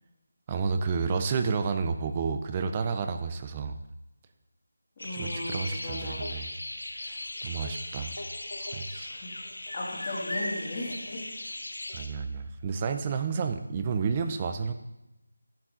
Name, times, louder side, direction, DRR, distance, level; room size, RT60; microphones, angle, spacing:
voice 1, 0.5-3.8 5.1-6.5 7.0-8.1 8.6-9.1 11.9-14.7, right 5 dB, 15° right, 8 dB, 0.4 m, -31 dB
sound 1, 5.0-12.1, left 1 dB, 85° left, 1.5 m, -37 dB
voice 2, 5.0-6.3 9.1-11.2, left 1 dB, 15° left, -6 dB, 2.1 m, -37 dB
11.5 x 7.4 x 3.7 m, 0.93 s
figure-of-eight pair, 180°, 0 cm